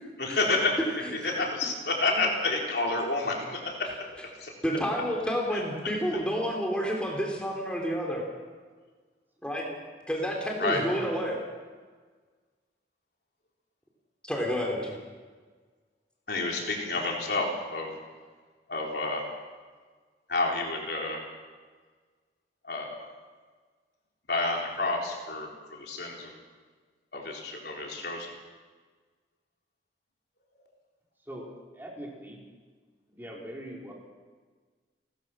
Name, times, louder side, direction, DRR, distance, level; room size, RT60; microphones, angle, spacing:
voice 1, 0.2-0.8 1.1-3.9 4.4-4.5 5.5-5.6 10.6-10.8 16.3-17.9 18.7-19.2 20.3-21.2 22.6-23.1 24.3-26.4 27.1-28.4, left 3 dB, 65° left, -1 dB, 4.2 m, -29 dB
voice 2, 4.6-8.2 9.4-9.7 10.1-11.4 14.2-15.0, equal, 5° left, -1 dB, 3.2 m, -30 dB
voice 3, 31.7-32.4 33.1-33.9, right 1 dB, 10° right, -3 dB, 4.5 m, -41 dB
30.0 x 14.5 x 6.2 m, 1.5 s
head